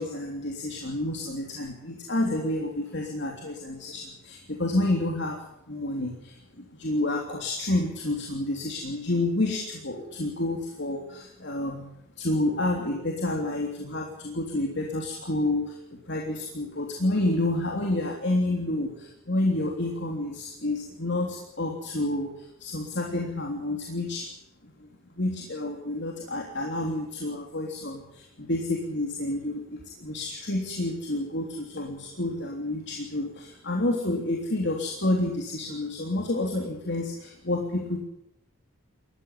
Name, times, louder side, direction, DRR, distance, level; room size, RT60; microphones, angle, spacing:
voice 1, 0.0-11.9 12.2-15.8 16.1-24.3 24.6-24.9 25.1-38.0, left 2 dB, 55° left, 0 dB, 3.3 m, -29 dB
20.5 x 15.0 x 9.7 m, 0.79 s
head